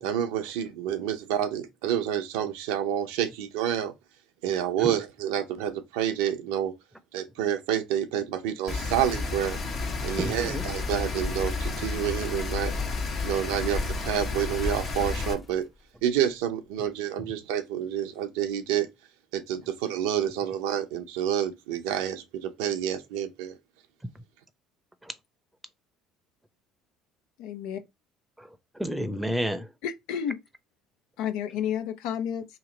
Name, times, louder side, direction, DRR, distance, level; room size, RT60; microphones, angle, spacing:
voice 1, 0.0-3.9 4.4-6.7 7.1-9.6 10.0-12.7 13.2-15.7 16.0-18.9 19.3-23.6, right 10 dB, 75° right, 0.6 m, -28 dB
Rain, 8.7-15.3, left 4 dB, 55° left, 1.2 m, -31 dB
voice 2, 10.2-10.6 24.0-24.2 25.0-25.1 28.4-29.7, equal, 5° right, 0.7 m, -31 dB
sound 1, 11.2-12.3 12.7-16.0, left 1 dB, 25° left, 0.9 m, -38 dB
voice 3, 27.4-27.8 29.8-30.3 31.2-32.4, left 9 dB, 70° left, 0.5 m, -31 dB
3.0 x 2.8 x 3.8 m
hypercardioid pair, 70°, 0 cm